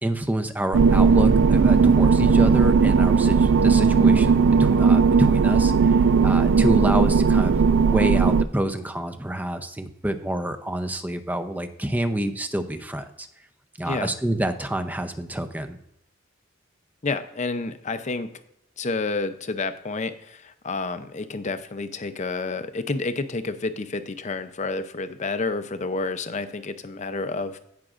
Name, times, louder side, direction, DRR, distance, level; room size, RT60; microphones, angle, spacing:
voice 1, 0.0-5.7 6.2-13.3 13.8-15.8, right 1 dB, 10° right, 9 dB, 0.6 m, -28 dB
sound 1, 0.7-8.4, right 5 dB, 65° right, 0.4 m, -17 dB
voice 2, 17.0-18.3 18.8-27.6, left 3 dB, 40° left, 11 dB, 0.6 m, -29 dB
16.5 x 6.0 x 2.5 m, 0.81 s
head